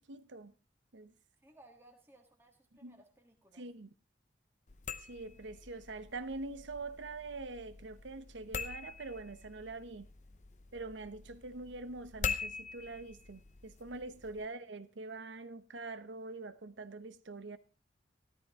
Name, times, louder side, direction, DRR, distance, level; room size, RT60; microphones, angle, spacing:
voice 1, 0.1-0.5 0.9-1.1 2.8-3.0 3.5-3.9 5.1-10.1 10.7-17.6, right 3 dB, 85° right, 1.0 m, -44 dB
voice 2, 1.4-3.6, right 1 dB, 15° right, 1.6 m, -61 dB
sound 1, 4.7-14.5, left 5 dB, 40° left, 0.8 m, -44 dB
13.5 x 13.0 x 3.6 m
head